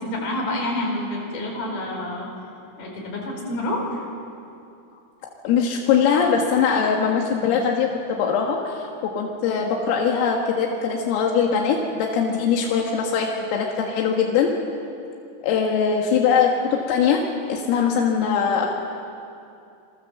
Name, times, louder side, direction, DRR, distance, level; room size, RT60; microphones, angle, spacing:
voice 1, 0.0-2.3 2.8-4.1, left 1 dB, 50° left, -1 dB, 6.5 m, -28 dB
voice 2, 5.4-14.5 15.4-18.7, left 6 dB, 85° left, 0 dB, 4.4 m, -21 dB
27.5 x 22.5 x 7.6 m, 2.6 s
omnidirectional pair, 5.9 m